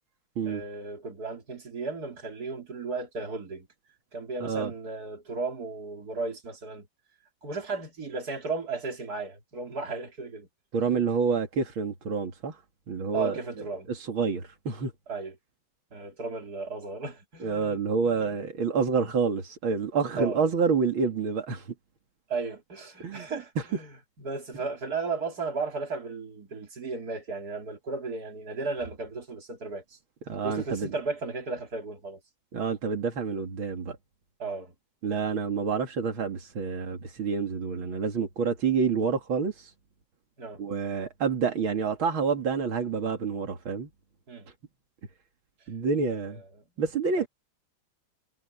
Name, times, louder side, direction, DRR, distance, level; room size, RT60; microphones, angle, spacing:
voice 1, 0.4-3.7 4.1-6.9 7.4-10.5 10.8-11.1 13.1-13.9 15.1-15.4 15.9-17.8 18.0-18.4 20.2-20.5 22.3-30.0 30.4-32.2 34.4-34.7 40.4-40.6 44.3-44.5 46.1-46.4 47.2-47.3, right 3 dB, 50° right, 3.9 m, -35 dB
voice 2, 4.4-4.7 10.7-12.6 12.9-13.4 13.9-14.9 17.4-21.6 23.0-23.3 30.3-30.9 32.5-34.0 35.0-39.5 40.6-43.9 45.7-46.4 46.8-47.3, right 5 dB, 90° right, 3.1 m, -28 dB
omnidirectional pair, 2.1 m